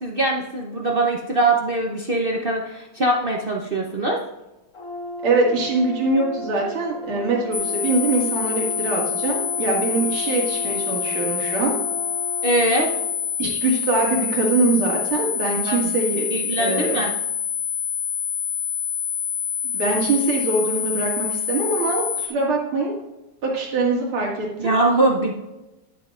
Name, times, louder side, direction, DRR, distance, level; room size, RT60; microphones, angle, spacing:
voice 1, 0.0-4.2 12.4-12.9 15.7-15.9 16.3-17.1 24.6-25.3, right 2 dB, 65° right, -1 dB, 0.5 m, -22 dB
Brass instrument, 4.7-13.2, left 1 dB, 40° left, 2.2 m, -34 dB
voice 2, 5.2-11.7 13.4-16.3 16.6-17.0 19.6-22.9 23.4-24.7, right 3 dB, 85° right, -3 dB, 2.9 m, -23 dB
sound 1, 7.5-22.3, left 8 dB, 20° left, 1.5 m, -26 dB
10.5 x 9.4 x 2.5 m, 0.99 s
omnidirectional pair, 2.3 m